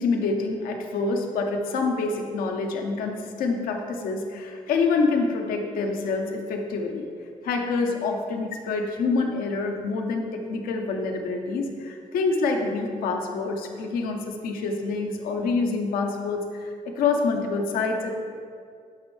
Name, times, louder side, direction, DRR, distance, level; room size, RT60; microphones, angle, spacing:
voice 1, 0.0-7.1 7.4-18.2, left 4 dB, 85° left, 3 dB, 0.7 m, -26 dB
9.4 x 6.1 x 3.2 m, 2.2 s
cardioid pair, 70°, 14 cm